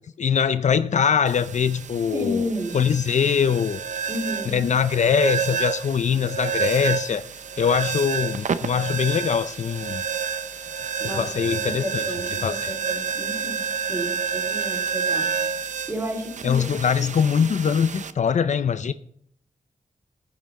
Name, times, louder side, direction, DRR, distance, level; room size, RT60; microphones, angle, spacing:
voice 1, 0.2-2.4 2.7-3.8 4.5-7.2 7.6-10.0 11.0-12.0 12.4-12.7 16.4-18.9, left 7 dB, 60° left, 0.5 m, -22 dB
sound 1, 1.3-18.1, right 6 dB, 65° right, 0.6 m, -29 dB
voice 2, 2.1-2.8 4.1-4.7 11.0-15.3 15.9-16.7, left 1 dB, 20° right, 3.8 m, -31 dB
16.5 x 5.9 x 4.2 m
wide cardioid pair, 90°, 14 cm